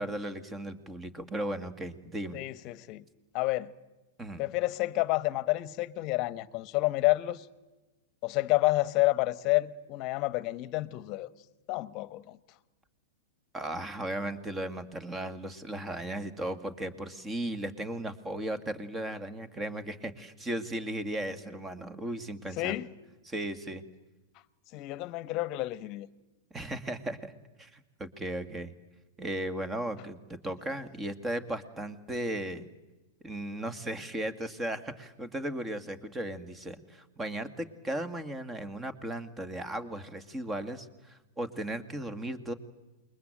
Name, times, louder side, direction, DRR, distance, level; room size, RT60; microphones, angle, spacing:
voice 1, 0.0-2.4 4.2-4.4 13.5-22.9 23.2-23.8 26.5-27.3 27.6-28.7 29.2-32.6 33.2-42.5, right 1 dB, 15° right, 2.2 m, -36 dB
voice 2, 2.3-3.0 3.3-3.7 4.4-7.4 8.2-11.3 11.7-12.4 22.6-22.9 24.7-26.1, left 19 dB, 40° left, 1.2 m, -29 dB
28.5 x 22.0 x 9.1 m
hypercardioid pair, 105°, 0 cm